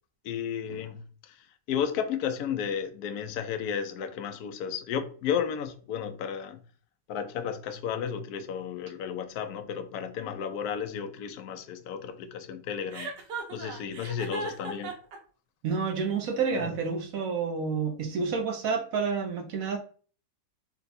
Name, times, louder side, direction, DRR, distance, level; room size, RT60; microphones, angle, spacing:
voice 1, 0.2-6.6 7.1-13.1 13.5-14.9 16.5-16.8, left 8 dB, 70° left, 1.0 m, -33 dB
Chuckle chortle, 12.9-15.2, right 4 dB, 90° right, 1.6 m, -36 dB
voice 2, 15.6-19.8, right 5 dB, 65° right, 1.0 m, -29 dB
4.2 x 2.3 x 4.1 m
omnidirectional pair, 1.8 m